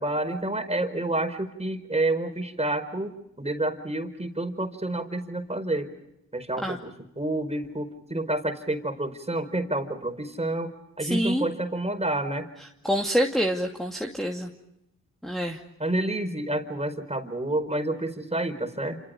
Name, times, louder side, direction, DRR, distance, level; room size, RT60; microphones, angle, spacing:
voice 1, 0.0-3.1 3.4-5.9 6.3-6.9 7.2-10.7 11.0-12.5 15.8-19.0, right 1 dB, 15° right, 8 dB, 4.7 m, -29 dB
voice 2, 11.0-11.5 12.8-14.5 15.2-15.6, equal, ahead, 1 dB, 2.6 m, -26 dB
28.5 x 27.5 x 5.1 m, 0.85 s
supercardioid pair, 45°, 36 cm